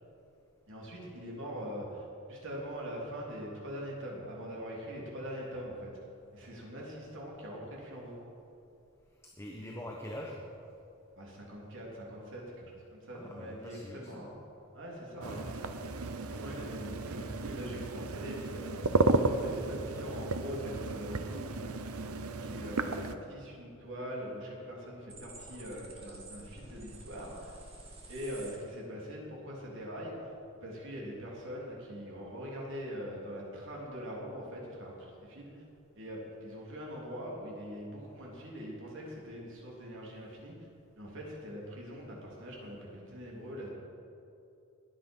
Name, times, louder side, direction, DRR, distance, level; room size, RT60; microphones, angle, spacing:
voice 1, 0.7-5.9 6.3-8.2 11.1-14.3 14.7-15.4 16.3-18.9 19.4-21.5 22.4-27.6 28.1-30.3 30.6-35.6 35.9-40.7 41.0-43.7, equal, 65° right, -3 dB, 3.6 m, -42 dB
voice 2, 9.4-10.6 13.1-14.4 15.2-15.8 16.1-16.5, equal, 10° left, -1 dB, 1.2 m, -44 dB
sound 1, 15.2-23.1, right 3 dB, 85° right, 0.8 m, -33 dB
sound 2, 25.1-28.5, right 2 dB, 30° right, 2.7 m, -50 dB
21.0 x 8.8 x 5.6 m, 2.7 s
head